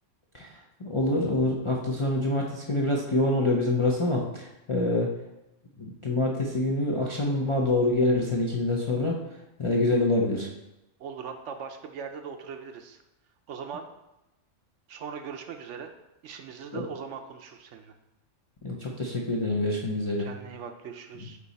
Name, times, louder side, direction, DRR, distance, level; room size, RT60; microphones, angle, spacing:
voice 1, 0.8-5.1 5.8-9.2 9.6-10.5 16.7-16.8 18.6-20.3, left 2 dB, 35° left, -2 dB, 0.5 m, -26 dB
voice 2, 11.0-13.0 13.5-13.8 14.9-15.9 16.2-17.9 20.2-21.4, right 6 dB, 70° right, 6 dB, 0.9 m, -40 dB
8.2 x 2.9 x 4.1 m, 0.91 s
omnidirectional pair, 1.3 m